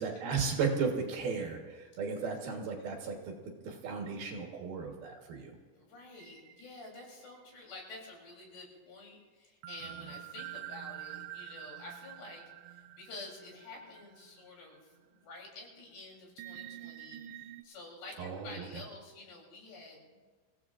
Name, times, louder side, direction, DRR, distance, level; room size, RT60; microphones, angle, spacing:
voice 1, 0.0-3.4 3.6-5.6 18.2-18.7, right 5 dB, 65° right, 2 dB, 3.0 m, -35 dB
voice 2, 2.2-2.8 5.8-20.2, left 2 dB, 70° left, -2 dB, 5.5 m, -50 dB
sound 1, 6.1-8.1 9.6-14.5 15.0-15.1 16.4-17.6, right 13 dB, 80° right, 2.4 m, -47 dB
28.5 x 16.0 x 2.5 m, 1.4 s
omnidirectional pair, 5.1 m